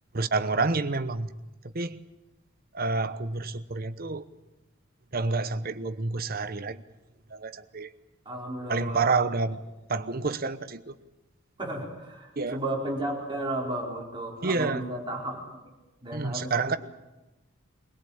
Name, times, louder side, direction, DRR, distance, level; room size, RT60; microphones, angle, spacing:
voice 1, 0.1-1.3 1.6-2.0 2.7-4.2 5.1-6.8 7.3-7.9 8.7-9.6 9.9-11.0 12.4-12.6 14.4-14.9 16.1-16.8, right 3 dB, 45° right, 1.0 m, -28 dB
voice 2, 8.2-9.1 11.6-15.4 16.0-16.8, right 1 dB, 25° right, 4.7 m, -33 dB
24.0 x 17.5 x 8.7 m
head